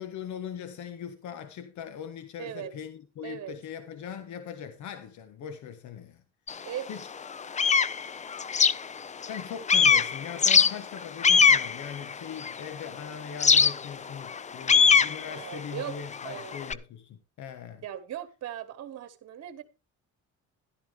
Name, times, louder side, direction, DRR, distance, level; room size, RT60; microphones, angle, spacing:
voice 1, 0.0-6.2 6.9-7.1 9.3-17.8, left 8 dB, 65° left, 1.5 m, -40 dB
voice 2, 2.4-2.7 3.2-3.5 6.6-6.9 15.2-16.0 16.2-16.5 17.8-19.6, right 11 dB, 55° right, 1.5 m, -38 dB
sound 1, 6.5-6.6 7.1-9.4 9.7-12.8 13.4-16.7, left 6 dB, 25° left, 0.5 m, -22 dB
12.0 x 11.0 x 3.4 m
cardioid pair, 100°, 31 cm